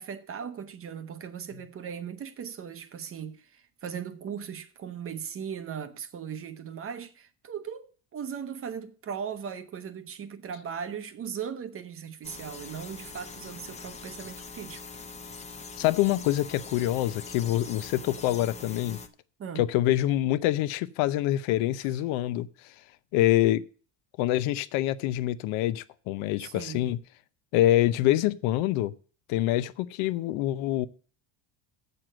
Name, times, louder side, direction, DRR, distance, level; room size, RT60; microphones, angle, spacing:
voice 1, 0.0-14.8 19.4-19.7 26.4-27.0, right 7 dB, 30° right, 0.8 m, -38 dB
sound 1, 12.2-19.1, left 4 dB, 15° left, 0.7 m, -43 dB
voice 2, 15.8-19.0 19.6-22.5 23.1-23.6 24.2-27.0 27.5-28.9 29.3-30.9, left 14 dB, 80° left, 0.8 m, -25 dB
7.7 x 6.6 x 7.5 m
cardioid pair, 165°, 48 cm